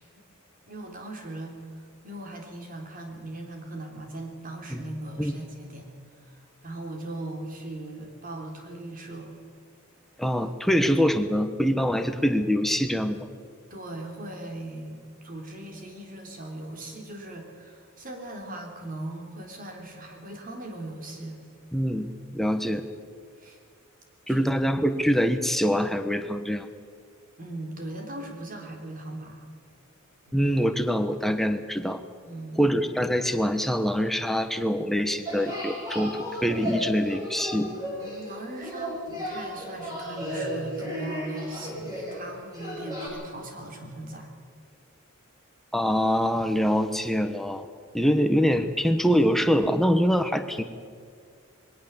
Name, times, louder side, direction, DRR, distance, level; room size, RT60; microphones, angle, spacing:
voice 1, 0.7-5.9 6.3-9.3 13.7-21.4 23.4-23.6 24.2-24.5 27.4-29.5 30.3-30.5 32.2-32.7 38.0-44.3, right 1 dB, 40° right, 2 dB, 3.7 m, -39 dB
voice 2, 10.2-13.3 21.7-22.1 22.3-22.8 24.3-26.7 30.3-32.0 32.6-37.7 45.7-47.7 47.9-50.6, equal, ahead, 7 dB, 1.2 m, -24 dB
sound 1, 35.3-43.1, equal, 20° right, 7.2 m, -34 dB
21.5 x 17.5 x 7.3 m, 2.1 s
head